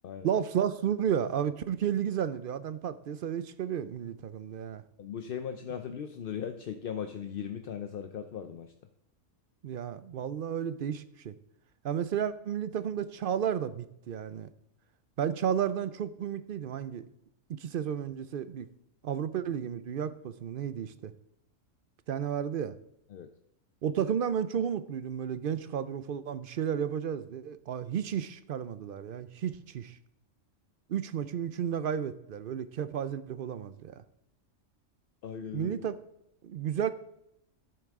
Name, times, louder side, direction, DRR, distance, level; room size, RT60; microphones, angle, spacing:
voice 1, 0.2-4.8 9.6-11.3 11.8-14.5 15.2-17.0 17.5-18.7 19.0-21.1 22.1-22.8 23.8-30.0 30.9-34.0 35.5-36.0 36.4-36.9, right 8 dB, 60° right, 14 dB, 0.6 m, -32 dB
voice 2, 5.0-8.7 23.1-23.3 35.2-35.7, left 8 dB, 55° left, 7 dB, 0.7 m, -38 dB
14.0 x 8.0 x 3.6 m, 0.77 s
omnidirectional pair, 1.3 m